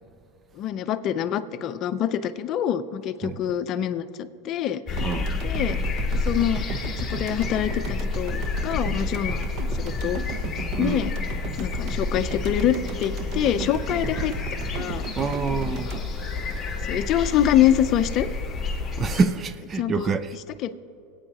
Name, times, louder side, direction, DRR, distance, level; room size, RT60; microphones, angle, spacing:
voice 1, 0.6-5.1 5.4-5.8 6.3-6.6 7.0-9.5 9.7-10.2 10.8-11.1 11.6-14.3 14.7-15.0 15.7-16.0 16.9-18.3 19.7-20.1 20.6-20.7, left 10 dB, 45° left, 0.6 m, -25 dB
sound 1, 4.9-19.3, left 4 dB, 20° left, 2.0 m, -30 dB
voice 2, 5.0-5.4 10.8-11.1 15.2-15.9 19.0-20.4, right 4 dB, 30° right, 0.5 m, -26 dB
sound 2, 5.0-17.2, right 5 dB, 50° right, 0.9 m, -36 dB
25.0 x 8.9 x 2.9 m
supercardioid pair, 115°, 0 cm